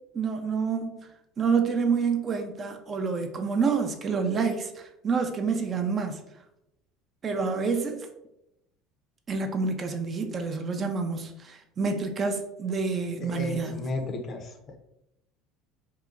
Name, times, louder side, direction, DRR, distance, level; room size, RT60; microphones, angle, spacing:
voice 1, 0.1-1.1 1.4-6.2 7.2-8.1 9.3-13.9, right 5 dB, 35° right, 0.4 m, -28 dB
voice 2, 13.2-14.8, left 2 dB, 40° left, 0.5 m, -34 dB
2.7 x 2.1 x 2.4 m
hypercardioid pair, 80°, 0 cm